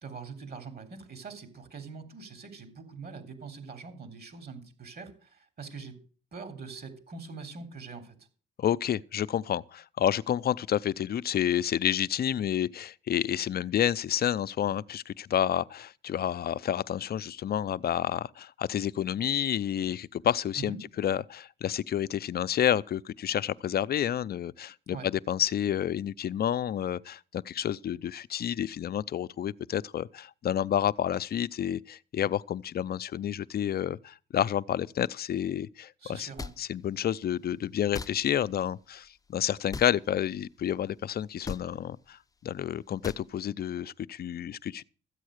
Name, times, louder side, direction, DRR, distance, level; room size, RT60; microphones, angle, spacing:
voice 1, 0.0-6.0 6.3-8.2 20.6-20.8 24.9-25.1 36.0-36.5, right 4 dB, 50° right, 3.4 m, -43 dB
voice 2, 8.6-36.3 36.6-44.8, left 10 dB, 50° left, 0.6 m, -29 dB
sound 1, 36.4-36.6 37.9-38.1 39.7-39.9 41.4-41.6 43.0-43.2, left 4 dB, 15° left, 0.7 m, -37 dB
14.0 x 8.4 x 6.5 m
cardioid pair, 90°, 20 cm